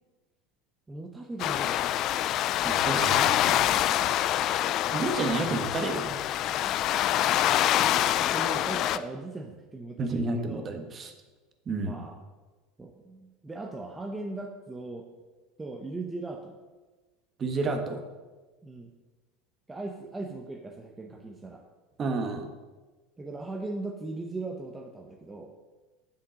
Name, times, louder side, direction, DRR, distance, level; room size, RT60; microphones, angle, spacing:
voice 1, 0.9-2.0 3.0-4.1 6.6-6.8 7.2-7.6 8.0-8.1 8.3-10.7 11.8-12.2 12.8-15.1 15.6-16.6 18.6-18.9 19.7-21.6 23.2-25.5, right 2 dB, 15° right, 2 dB, 0.9 m, -39 dB
sound 1, 1.4-9.0, left 12 dB, 50° left, 0.4 m, -26 dB
voice 2, 2.6-3.1 4.9-6.2 10.0-11.1 11.7-12.0 17.4-18.0 22.0-22.5, right 3 dB, 30° right, 6 dB, 1.3 m, -30 dB
7.6 x 7.1 x 6.3 m, 1.3 s
supercardioid pair, 115°, 0 cm